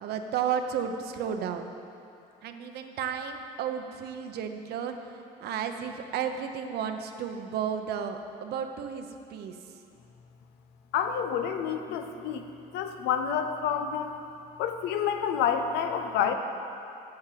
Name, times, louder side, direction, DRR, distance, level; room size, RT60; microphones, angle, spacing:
voice 1, 0.0-1.7 2.4-9.6, right 7 dB, 70° right, 6 dB, 0.9 m, -33 dB
voice 2, 10.9-12.5 12.7-14.2 14.6-16.3, left 8 dB, 85° left, 6 dB, 0.8 m, -28 dB
8.7 x 7.6 x 7.5 m, 2.7 s
cardioid pair, 110°, 17 cm